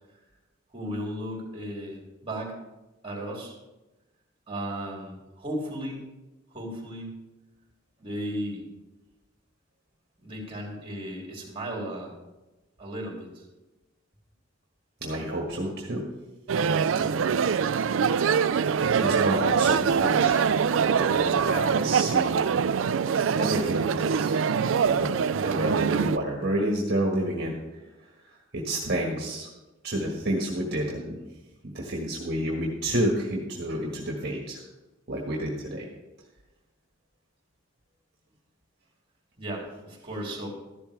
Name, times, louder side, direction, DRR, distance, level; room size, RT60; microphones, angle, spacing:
voice 1, 0.7-2.6 3.0-3.6 4.5-6.0 6.5-7.1 8.0-8.6 10.2-12.1 12.8-13.4 39.4-40.5, equal, 30° right, -1 dB, 3.5 m, -35 dB
voice 2, 15.0-16.0 16.9-17.6 17.9-18.2 18.8-20.7 20.9-22.7 23.3-24.4 24.8-27.5 28.5-29.5 29.8-31.2 31.6-34.6 35.1-35.9, right 1 dB, 55° right, -1 dB, 1.6 m, -30 dB
sound 1, 16.5-26.2, right 6 dB, 80° right, 0.4 m, -24 dB
14.0 x 11.5 x 3.3 m, 1.1 s
head